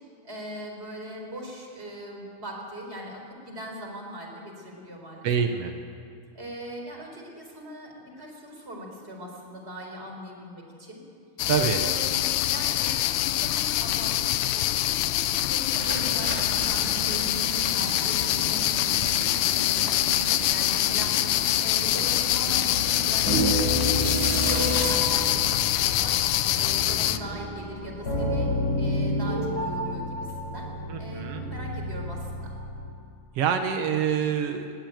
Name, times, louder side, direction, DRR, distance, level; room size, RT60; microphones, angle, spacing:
voice 1, 0.2-5.3 6.3-11.0 11.6-28.5 28.8-30.7 31.0-32.5, equal, 15° right, 1 dB, 4.2 m, -40 dB
voice 2, 5.2-5.7 11.5-11.8 26.9-27.2 30.9-31.4 33.3-34.7, right 7 dB, 90° right, 6 dB, 1.3 m, -26 dB
sound 1, 11.4-27.2, left 14 dB, 80° left, 1.8 m, -25 dB
sound 2, 15.7-25.0, right 2 dB, 30° right, 0.8 m, -35 dB
sound 3, 23.3-32.9, equal, 25° left, 5.8 m, -30 dB
20.5 x 18.0 x 9.2 m, 2.5 s
omnidirectional pair, 4.5 m